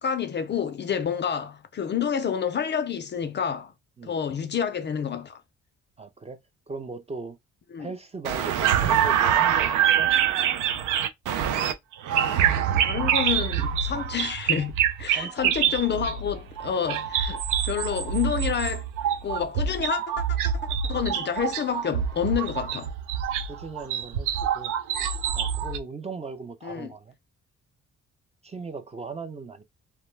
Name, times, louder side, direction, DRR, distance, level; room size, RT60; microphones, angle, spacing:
voice 1, 0.0-3.7 4.0-5.4 7.7-7.9 12.8-18.9 19.2-20.0 20.8-22.9 26.6-26.9, left 8 dB, 35° left, 0.4 m, -29 dB
voice 2, 6.0-6.4 6.7-7.4 7.8-10.1 15.1-15.5 15.9-16.2 23.5-24.7 25.3-27.1 28.4-29.6, right 4 dB, 20° right, 0.4 m, -38 dB
sound 1, 8.2-25.8, right 9 dB, 85° right, 0.5 m, -25 dB
2.2 x 2.1 x 3.1 m
cardioid pair, 90°, 30 cm